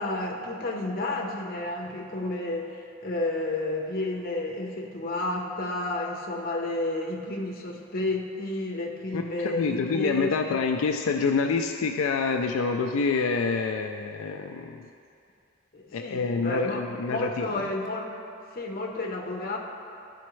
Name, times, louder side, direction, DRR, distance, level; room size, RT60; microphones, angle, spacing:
voice 1, 0.0-10.6 15.7-16.8 17.1-18.0 18.5-19.6, left 2 dB, 45° left, 0 dB, 0.7 m, -31 dB
voice 2, 9.1-14.9 15.9-17.5, left 4 dB, 85° left, 4 dB, 0.3 m, -27 dB
11.5 x 4.2 x 3.1 m, 2.5 s
head